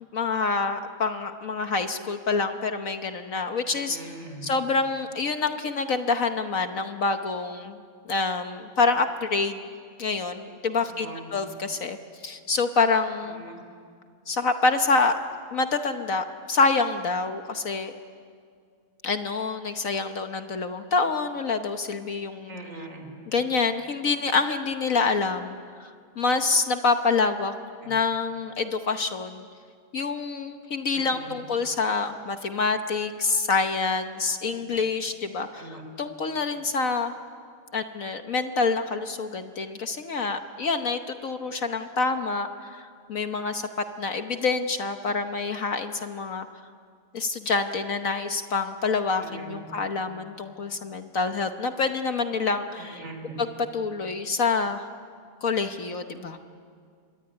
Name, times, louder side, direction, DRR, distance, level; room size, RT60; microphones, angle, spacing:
voice 1, 0.1-4.0 4.4-7.8 8.1-9.7 10.0-12.0 12.2-13.4 14.3-15.1 15.5-17.9 19.0-22.5 23.3-27.5 27.9-29.5 29.9-35.7 36.0-37.1 37.7-43.7 44.0-46.5 47.1-53.0 53.4-54.8 55.4-56.4, left 4 dB, 50° left, 7 dB, 1.2 m, -27 dB
voice 2, 3.7-4.4 10.8-11.3 13.2-13.6 22.5-23.1 27.8-27.9 30.9-31.4 34.6-34.7 35.5-35.8 49.2-49.7 52.8-53.4, right 2 dB, 35° right, 5 dB, 4.1 m, -42 dB
25.5 x 22.0 x 9.7 m, 2.1 s
omnidirectional pair, 2.3 m